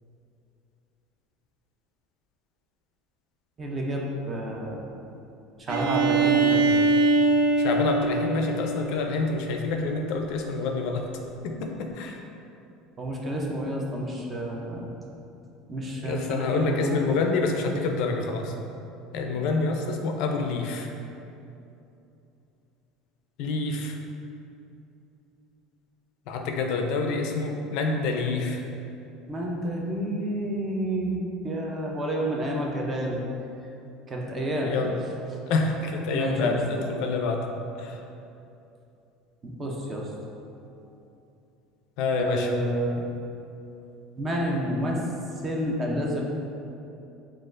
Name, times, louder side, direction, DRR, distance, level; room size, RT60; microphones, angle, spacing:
voice 1, 3.6-4.8 5.7-6.9 13.0-14.9 15.7-17.2 29.3-33.2 34.1-34.7 36.1-36.5 39.4-40.0 42.2-43.0 44.2-45.0 45.4-46.2, right 1 dB, 20° right, -1 dB, 0.5 m, -29 dB
Bowed string instrument, 5.7-9.4, right 3 dB, 85° right, 0.4 m, -23 dB
voice 2, 7.6-11.1 11.4-12.2 16.0-18.5 19.1-20.9 23.4-24.0 26.3-28.6 34.6-35.0 35.5-37.5 37.8-38.0 42.0-42.5 43.0-43.1, left 3 dB, 60° left, 3 dB, 0.4 m, -27 dB
6.2 x 2.3 x 2.4 m, 2.8 s
cardioid pair, 160°, 0 cm